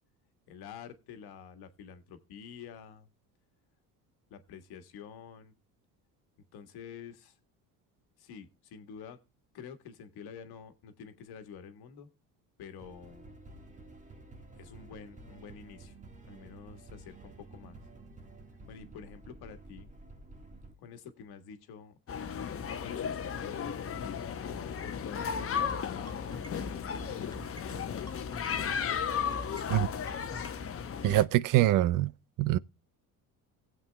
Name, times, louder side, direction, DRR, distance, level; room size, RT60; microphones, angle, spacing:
voice 1, 0.5-3.1 4.3-5.5 6.5-7.3 8.2-9.2 9.5-12.1 12.6-13.4 14.5-15.9 16.2-17.8 18.7-19.9 20.8-21.9 22.8-28.0, left 7 dB, 65° left, 1.5 m, -48 dB
sound 1, 12.8-20.7, right 2 dB, 20° right, 1.6 m, -51 dB
sound 2, 22.1-31.3, left 7 dB, 35° left, 0.9 m, -35 dB
sound 3, 25.3-30.6, equal, 10° left, 0.9 m, -45 dB
voice 2, 31.0-32.1 32.4-32.6, right 14 dB, 50° right, 0.5 m, -24 dB
18.5 x 7.5 x 2.2 m
supercardioid pair, 75°, 41 cm